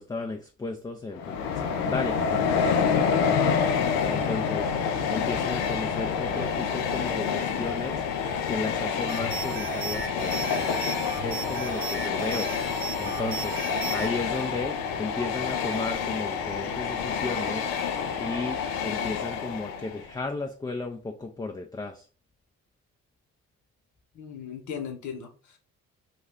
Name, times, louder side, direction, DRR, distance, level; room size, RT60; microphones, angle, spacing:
voice 1, 0.0-3.4 4.0-4.7 5.1-8.0 8.5-10.8 11.2-12.5 13.0-13.6 13.9-17.7 18.2-18.6 18.8-22.1, left 3 dB, 10° left, 3 dB, 0.3 m, -34 dB
Train, 1.1-20.1, left 6 dB, 85° left, 0.5 m, -28 dB
sound 1, 9.1-14.1, right 6 dB, 80° right, 0.7 m, -36 dB
voice 2, 24.1-25.6, left 7 dB, 55° left, 4 dB, 1.0 m, -37 dB
2.3 x 2.2 x 3.5 m, 0.36 s
supercardioid pair, 55°, 35 cm